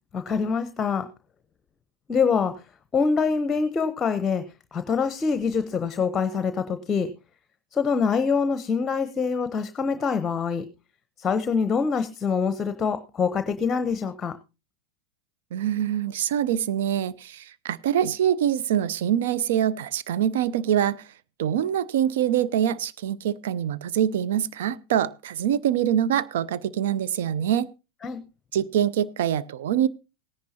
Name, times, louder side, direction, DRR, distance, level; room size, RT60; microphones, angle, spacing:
voice 1, 0.1-1.1 2.1-2.6 2.9-4.4 4.7-7.1 7.7-10.7 11.2-14.3 28.0-28.2, left 5 dB, 25° left, 11 dB, 0.9 m, -25 dB
voice 2, 15.5-21.0 21.4-27.7 28.5-29.9, right 10 dB, 70° right, 17 dB, 0.6 m, -24 dB
18.0 x 10.5 x 2.8 m, 0.29 s
hypercardioid pair, 95°, 0 cm